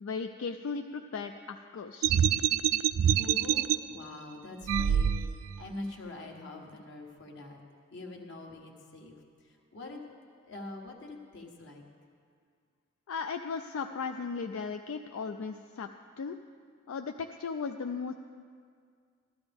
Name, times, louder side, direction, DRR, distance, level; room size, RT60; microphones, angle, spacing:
voice 1, 0.0-2.2 13.1-15.9 16.2-16.4 16.9-18.1, left 5 dB, 85° left, 6 dB, 0.4 m, -36 dB
sound 1, 2.0-3.8 4.6-5.6, right 9 dB, 85° right, 0.3 m, -26 dB
voice 2, 3.0-5.2 5.6-7.6 7.9-9.2 9.7-10.0 10.4-11.8, left 2 dB, 60° left, 1 dB, 1.3 m, -44 dB
13.5 x 13.0 x 3.5 m, 2.1 s
head